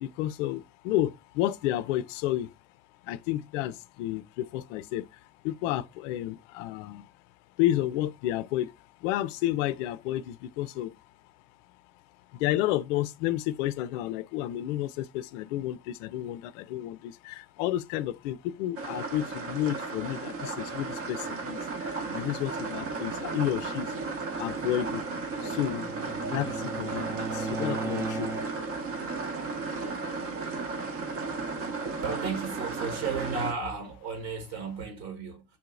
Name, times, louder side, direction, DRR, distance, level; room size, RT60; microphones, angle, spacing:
voice 1, 0.0-2.5 3.1-5.1 5.4-7.1 7.6-8.7 9.0-10.9 12.4-23.9 24.4-25.0 25.4-25.9 26.3-28.3, left 13 dB, 55° left, 0.5 m, -31 dB
sound 1, 18.8-33.5, right 4 dB, 30° right, 0.9 m, -34 dB
Bowed string instrument, 25.0-28.8, right 2 dB, 5° right, 0.4 m, -37 dB
voice 2, 32.0-35.4, right 5 dB, 55° right, 1.6 m, -34 dB
5.6 x 2.8 x 2.2 m
figure-of-eight pair, 70°, 44 cm